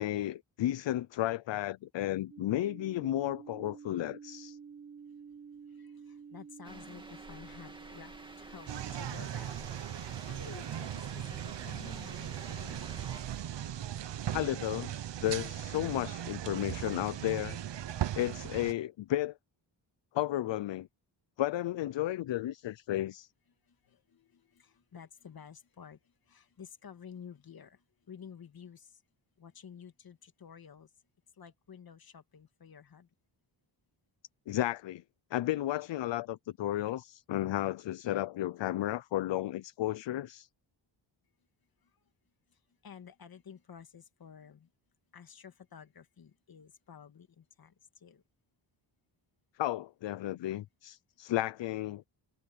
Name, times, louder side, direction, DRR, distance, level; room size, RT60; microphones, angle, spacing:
voice 1, 0.0-4.6 14.3-14.9 15.2-17.6 18.1-19.4 20.1-20.9 21.4-23.3 34.5-35.0 35.3-40.5 49.6-52.0, left 14 dB, 70° left, 0.6 m, -33 dB
sound 1, 2.3-9.0, right 6 dB, 30° right, 1.6 m, -50 dB
voice 2, 5.7-9.5 9.9-11.2 11.6-13.2 23.9-26.0 26.3-27.8 28.1-28.9 29.4-30.9 31.4-33.1 42.8-44.7 45.1-47.7 48.0-48.2, left 7 dB, 50° left, 2.0 m, -52 dB
sound 2, 6.6-13.2, right 1 dB, 10° right, 2.4 m, -50 dB
sound 3, 8.7-18.7, right 11 dB, 65° right, 1.0 m, -38 dB
wide cardioid pair, 125°, 46 cm